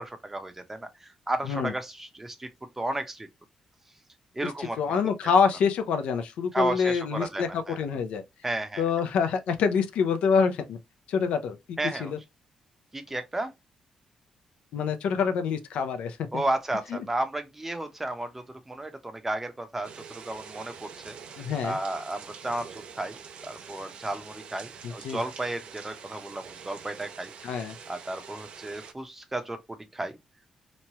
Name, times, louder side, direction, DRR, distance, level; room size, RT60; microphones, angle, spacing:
voice 1, 0.0-2.5 2.8-3.3 4.3-5.0 6.5-7.8 8.4-8.8 11.8-12.1 12.9-13.5 16.3-21.2 21.6-22.7 23.0-23.2 23.4-30.2, right 2 dB, 15° right, 0.6 m, -33 dB
voice 2, 4.4-8.2 8.8-10.8 11.1-12.2 14.7-16.4 16.9-17.0 21.4-21.8 24.8-25.2 27.4-27.8, left 6 dB, 80° left, 0.5 m, -26 dB
sound 1, 19.8-28.9, right 6 dB, 65° right, 0.5 m, -45 dB
3.1 x 2.2 x 2.7 m
cardioid pair, 105°, 2 cm